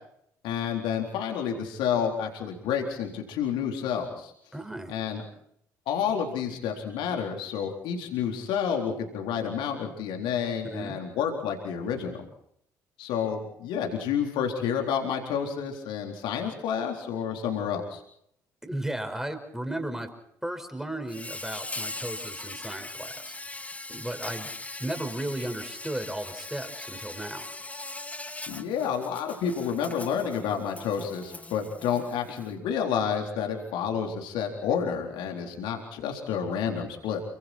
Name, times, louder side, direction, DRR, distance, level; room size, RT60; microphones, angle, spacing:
voice 1, 0.4-4.3 4.9-5.2 5.9-12.3 13.0-18.0 28.5-37.2, left 7 dB, 60° left, 2 dB, 4.0 m, -30 dB
voice 2, 4.5-4.9 10.6-11.0 18.6-20.1 20.4-23.3 23.9-24.5 24.8-27.4, right 1 dB, 5° right, 7 dB, 5.1 m, -35 dB
Insect, 21.1-32.5, left 2 dB, 15° left, 2.1 m, -40 dB
29.5 x 25.0 x 4.5 m, 0.71 s
figure-of-eight pair, 50°, 9 cm